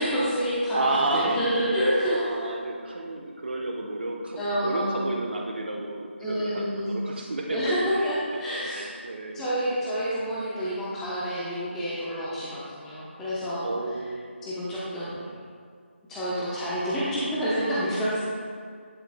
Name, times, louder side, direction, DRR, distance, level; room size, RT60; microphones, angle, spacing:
voice 1, 0.0-2.5 4.4-5.2 6.2-7.0 7.5-9.0 9.3-13.9 14.4-15.2 16.1-18.2, equal, 5° left, -9 dB, 0.9 m, -28 dB
voice 2, 0.7-1.4 2.1-7.7 8.0-8.1 8.6-9.5 13.6-14.2, right 2 dB, 55° right, 1 dB, 1.2 m, -31 dB
11.0 x 7.2 x 2.3 m, 2.1 s
figure-of-eight pair, 160°, 7 cm